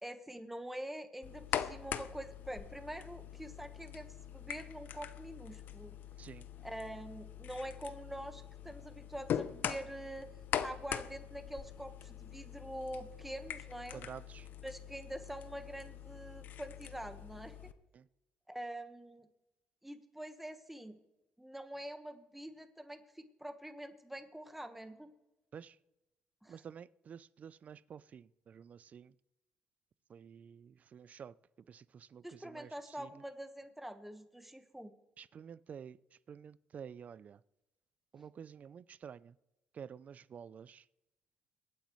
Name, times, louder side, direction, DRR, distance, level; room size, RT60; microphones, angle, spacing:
voice 1, 0.0-6.0 6.6-10.3 10.6-14.0 14.6-17.7 18.5-19.3 19.8-21.0 21.4-25.1 26.4-26.6 32.2-34.9, right 1 dB, 5° right, 1.3 m, -45 dB
sound 1, 1.2-17.7, left 9 dB, 65° left, 0.7 m, -43 dB
voice 2, 13.9-14.5 17.9-18.1 25.5-25.8 26.5-29.2 30.1-33.2 35.2-37.4 38.1-39.4 39.7-40.9, right 7 dB, 50° right, 0.4 m, -51 dB
23.5 x 9.1 x 3.2 m
supercardioid pair, 75°, 3 cm